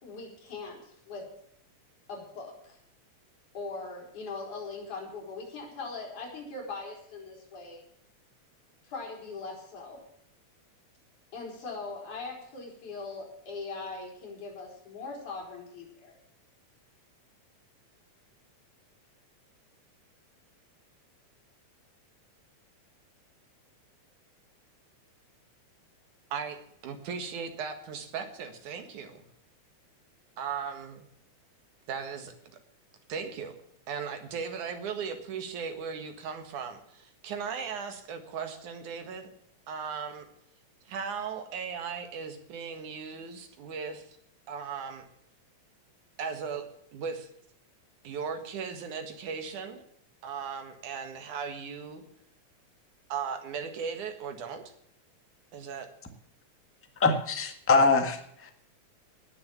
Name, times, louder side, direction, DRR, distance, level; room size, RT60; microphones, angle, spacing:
voice 1, 0.0-1.3 2.1-2.8 3.5-7.8 8.8-10.0 11.3-16.2, left 3 dB, 90° left, 0 dB, 5.5 m, -40 dB
voice 2, 26.3-29.3 30.4-31.1 31.9-32.3 33.1-33.6 33.9-39.3 39.7-40.3 40.9-44.2 44.5-45.1 46.2-47.3 48.0-49.8 50.2-52.0 53.1-54.6 55.5-55.9, right 6 dB, 85° right, 6 dB, 3.3 m, -37 dB
voice 3, 57.0-58.7, left 3 dB, 10° left, 5 dB, 0.7 m, -24 dB
19.0 x 7.1 x 7.1 m, 0.69 s
omnidirectional pair, 3.4 m